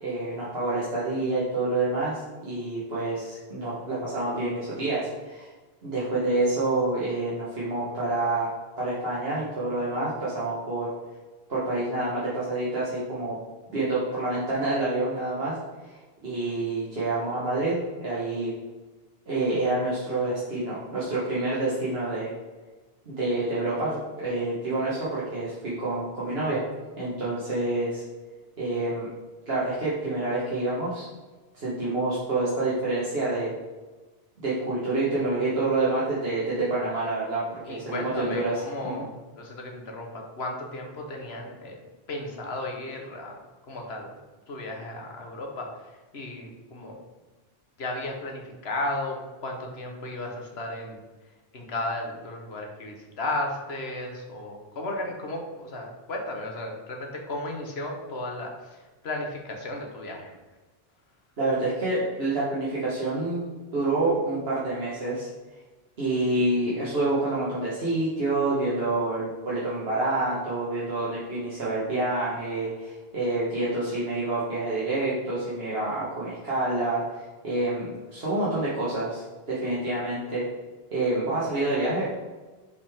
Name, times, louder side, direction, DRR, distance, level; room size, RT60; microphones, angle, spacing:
voice 1, 0.0-5.5 5.8-8.5 8.8-10.9 11.5-13.4 13.7-15.6 15.8-18.5 19.3-22.3 23.1-26.6 27.0-28.0 28.6-29.1 29.4-31.1 31.5-33.5 34.4-38.5 38.8-38.9 61.4-63.4 63.7-65.3 66.0-80.4 80.9-82.2, right 2 dB, 75° right, -8 dB, 1.7 m, -27 dB
voice 2, 37.6-39.1 39.4-41.8 42.1-44.1 44.5-47.0 47.8-51.0 51.5-60.3, left 2 dB, 85° left, 1 dB, 1.4 m, -34 dB
6.5 x 5.2 x 3.6 m, 1.2 s
omnidirectional pair, 1.0 m